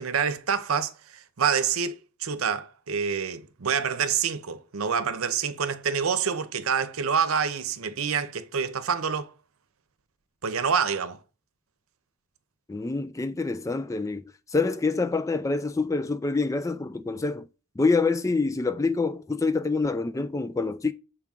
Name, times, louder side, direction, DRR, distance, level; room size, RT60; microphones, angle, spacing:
voice 1, 0.0-9.3 10.4-11.2, right 6 dB, 90° right, 0.7 m, -27 dB
voice 2, 12.7-14.3 14.5-17.5 17.8-20.9, left 3 dB, 15° left, 0.3 m, -26 dB
7.3 x 4.6 x 3.6 m
head